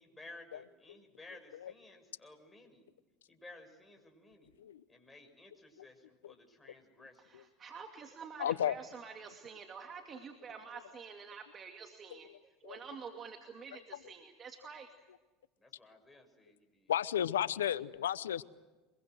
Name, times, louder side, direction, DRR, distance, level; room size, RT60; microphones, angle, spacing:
voice 1, 0.0-2.9 3.3-4.6 4.9-7.5 15.6-16.9, left 2 dB, 15° left, 3 dB, 6.2 m, -56 dB
voice 2, 7.2-12.3 12.6-14.9, right 6 dB, 35° right, 4 dB, 2.4 m, -48 dB
voice 3, 8.4-8.7 12.6-12.8 16.9-18.4, left 10 dB, 85° left, 18 dB, 0.8 m, -32 dB
24.5 x 22.5 x 8.0 m, 1.2 s
hypercardioid pair, 85°, 0 cm